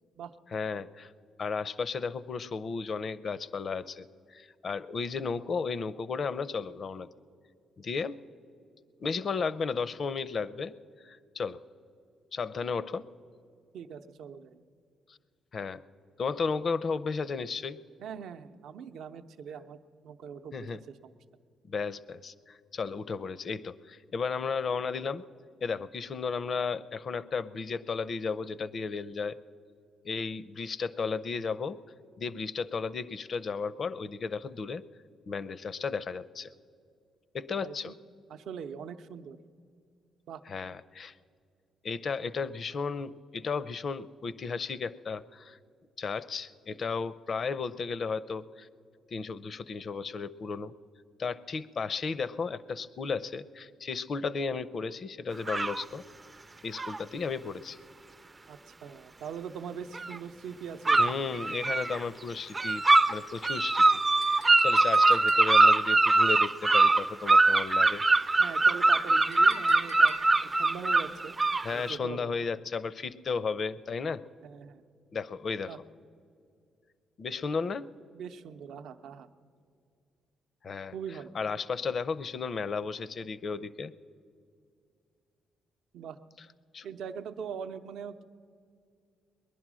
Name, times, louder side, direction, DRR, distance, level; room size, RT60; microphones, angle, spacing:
voice 1, 0.5-1.1 1.4-4.1 4.3-7.1 7.8-8.2 9.0-10.7 11.0-11.6 12.3-13.1 15.1-15.2 15.5-15.8 16.2-17.8 20.5-20.8 21.7-25.2 25.6-29.4 30.0-31.8 32.2-34.8 35.3-36.5 37.3-37.9 40.5-41.1 41.8-45.6 46.0-48.7 49.1-50.7 51.2-56.0 56.6-57.8 61.0-62.8 63.1-68.0 71.6-74.2 75.1-75.8 77.2-77.9 80.6-80.9 81.3-83.9 86.7-86.9, left 5 dB, 50° left, 16 dB, 0.5 m, -34 dB
voice 2, 13.7-14.6 18.0-21.1 37.6-37.9 38.3-39.4 40.3-40.4 58.5-61.2 68.4-71.4 71.7-72.3 74.4-74.8 75.7-75.8 78.1-79.3 80.9-81.4 85.9-86.2 86.8-88.2, right 7 dB, 75° right, 9 dB, 0.6 m, -42 dB
sound 1, 55.5-55.8 56.8-57.0 60.0-60.2 60.9-62.0 62.5-63.2 63.4-71.9, right 2 dB, 25° right, 0.4 m, -23 dB
Chink clink, 64.2-65.8 69.3-70.6, left 1 dB, 90° left, 1.2 m, -49 dB
20.5 x 11.0 x 6.2 m, 2.3 s
cardioid pair, 90°, 0 cm